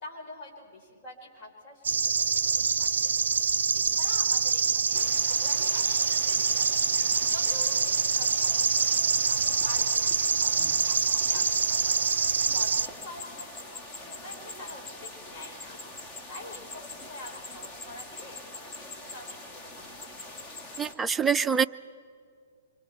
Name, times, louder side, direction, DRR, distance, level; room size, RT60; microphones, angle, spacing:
voice 1, 0.0-2.0 2.5-3.1 3.7-6.7 7.3-10.5 10.9-12.0 12.4-15.7 16.3-20.1, left 2 dB, 40° left, 1 dB, 4.5 m, -46 dB
sound 1, 1.8-12.9, right 6 dB, 80° right, 0.5 m, -25 dB
sound 2, 4.9-20.9, left 2 dB, 25° left, 2.1 m, -41 dB
voice 2, 20.8-21.6, right 6 dB, 10° right, 10 dB, 0.5 m, -25 dB
26.0 x 24.0 x 4.4 m, 2.2 s
hypercardioid pair, 130°, 0 cm